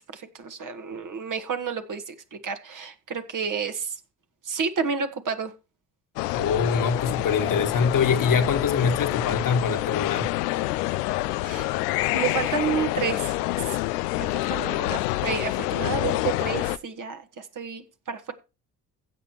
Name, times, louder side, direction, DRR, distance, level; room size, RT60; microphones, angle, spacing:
voice 1, 0.0-3.9 4.4-5.5 11.4-11.7 12.1-13.3 13.6-13.8 14.2-18.3, right 6 dB, 40° right, 1.6 m, -30 dB
sound 1, 6.2-16.8, left 18 dB, 80° left, 0.6 m, -27 dB
voice 2, 6.3-10.3, left 5 dB, 45° left, 1.6 m, -24 dB
16.0 x 6.6 x 3.0 m
hypercardioid pair, 50°, 47 cm